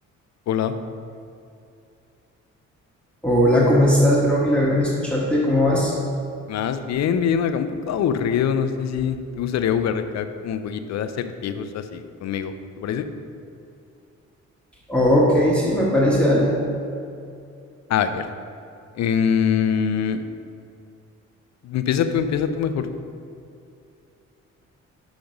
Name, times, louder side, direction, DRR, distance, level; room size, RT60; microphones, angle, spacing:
voice 1, 3.2-5.9 14.9-16.5, equal, 5° left, -6 dB, 1.2 m, -18 dB
voice 2, 6.5-13.1 17.9-18.2 19.0-20.2 21.6-22.9, left 7 dB, 65° left, 10 dB, 0.5 m, -24 dB
5.9 x 5.2 x 5.2 m, 2.5 s
cardioid pair, 90°, 30 cm